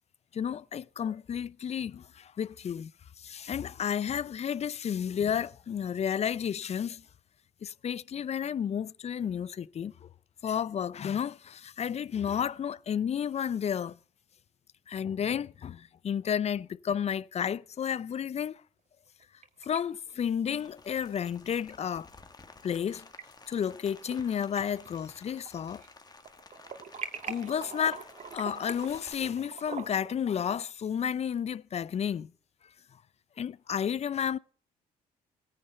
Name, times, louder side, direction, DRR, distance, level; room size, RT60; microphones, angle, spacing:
voice 1, 0.3-2.9 3.2-7.0 7.6-10.1 10.4-14.0 14.9-18.6 19.6-22.1 22.6-23.0 23.5-25.8 27.3-32.3 33.4-34.4, left 8 dB, 45° left, 0.6 m, -32 dB
sound 1, 19.1-19.8 20.1-20.2 21.7-21.8 22.9-23.2 23.7-24.3 24.6-25.9 26.2-30.1, right 6 dB, 50° right, 2.1 m, -43 dB
Rain, 20.5-29.1, left 3 dB, 25° left, 1.8 m, -54 dB
17.0 x 9.9 x 6.8 m
supercardioid pair, 65°, 16 cm